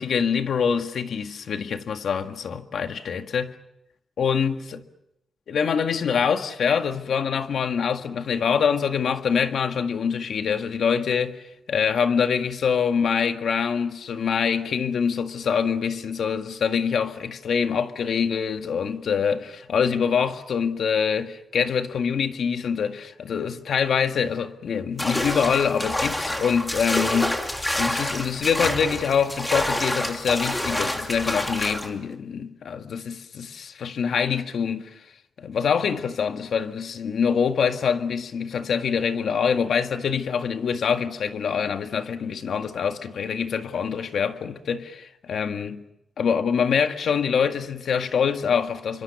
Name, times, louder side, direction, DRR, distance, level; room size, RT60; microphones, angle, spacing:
voice 1, 0.0-3.5 4.2-4.8 5.5-11.4 11.7-34.9 35.4-45.8 46.2-49.0, left 6 dB, 65° left, 1.8 m, -25 dB
sound 1, 25.0-31.9, left 1 dB, 10° left, 2.9 m, -27 dB
29.0 x 25.5 x 7.0 m
wide cardioid pair, 155°, 0 cm